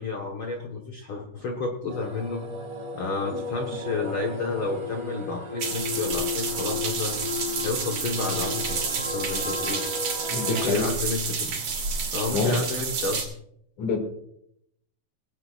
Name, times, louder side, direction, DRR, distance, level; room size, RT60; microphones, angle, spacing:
voice 1, 0.0-2.5 2.9-7.2 7.6-9.9 10.4-11.6 12.1-13.3, left 4 dB, 85° left, 2 dB, 1.1 m, -31 dB
sound 1, 1.9-10.7, left 4 dB, 40° right, 3.8 m, -34 dB
sound 2, 5.6-13.2, right 5 dB, 60° right, 3.9 m, -30 dB
voice 2, 10.3-10.9 12.3-12.6 13.8-14.0, left 4 dB, 55° left, 4 dB, 3.3 m, -26 dB
20.0 x 17.0 x 2.5 m, 0.72 s
omnidirectional pair, 4.5 m